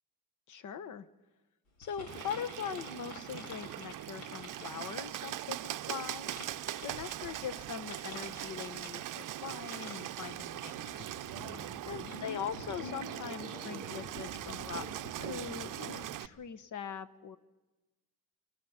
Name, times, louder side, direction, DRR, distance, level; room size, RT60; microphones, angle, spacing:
voice 1, 0.5-1.1 1.8-6.3 6.8-10.7 11.8-17.4, left 7 dB, 55° left, 13 dB, 1.1 m, -41 dB
sound 1, 1.8-16.1, left 2 dB, 90° left, 3.9 m, -49 dB
Bird, 2.1-16.3, right 13 dB, 60° right, 0.6 m, -41 dB
28.0 x 18.0 x 5.7 m, 1.1 s
cardioid pair, 80°, 36 cm